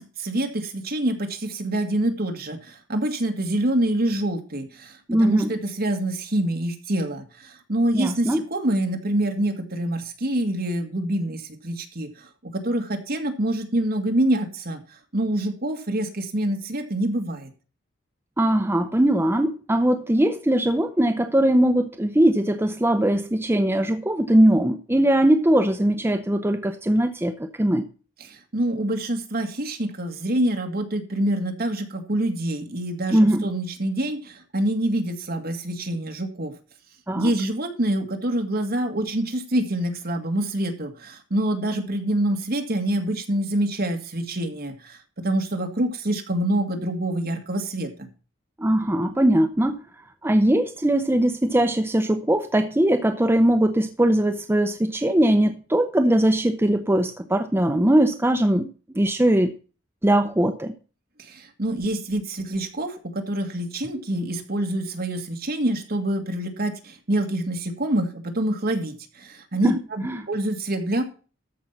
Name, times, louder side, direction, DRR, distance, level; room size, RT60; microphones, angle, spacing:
voice 1, 0.0-14.8 15.1-17.5 28.2-36.5 37.1-48.1 61.2-71.0, right 1 dB, 50° right, 2.0 m, -26 dB
voice 2, 5.1-5.5 7.9-8.4 18.4-27.9 33.1-33.4 37.1-37.3 48.6-49.8 50.2-59.5 60.0-60.7 69.6-69.8 70.0-70.2, right 1 dB, 10° right, 0.7 m, -20 dB
13.5 x 5.5 x 5.9 m
head